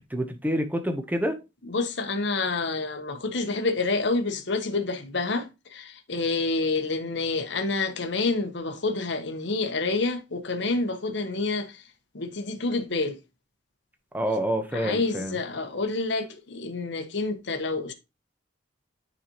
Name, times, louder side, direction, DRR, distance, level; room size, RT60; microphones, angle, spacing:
voice 1, 0.0-1.4 14.1-15.4, equal, 10° right, 0.9 m, -27 dB
voice 2, 1.6-11.8 12.1-13.2 14.7-17.9, left 3 dB, 65° left, 1.0 m, -28 dB
9.6 x 4.2 x 3.0 m
head